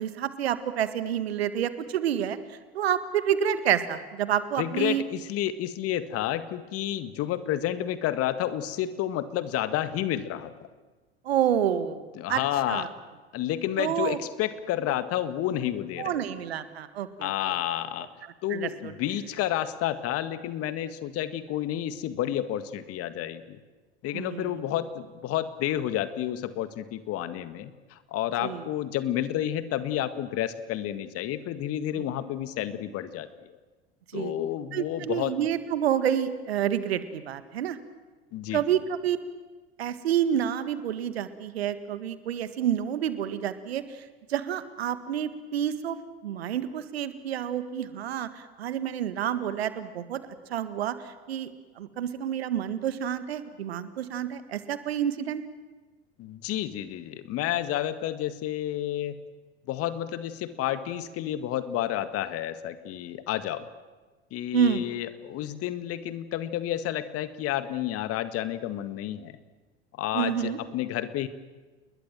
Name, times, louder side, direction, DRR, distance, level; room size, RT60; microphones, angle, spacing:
voice 1, 0.0-5.0 11.2-12.4 12.7-12.9 13.8-14.2 16.0-17.3 18.5-18.9 24.1-24.6 28.4-28.7 34.1-34.4 34.7-37.8 38.5-39.2 39.8-46.0 46.2-50.2 50.5-51.5 51.8-55.4 64.5-64.9 70.1-70.6, right 10 dB, 75° right, 12 dB, 1.9 m, -29 dB
voice 2, 4.6-10.5 12.2-12.9 13.3-16.2 17.2-18.1 18.4-23.6 24.0-33.6 34.1-35.3 38.3-38.6 56.2-59.2 59.7-63.7 64.3-69.4 70.0-71.3, left 12 dB, 45° left, 12 dB, 1.9 m, -30 dB
29.0 x 21.0 x 7.6 m, 1.3 s
figure-of-eight pair, 75°, 32 cm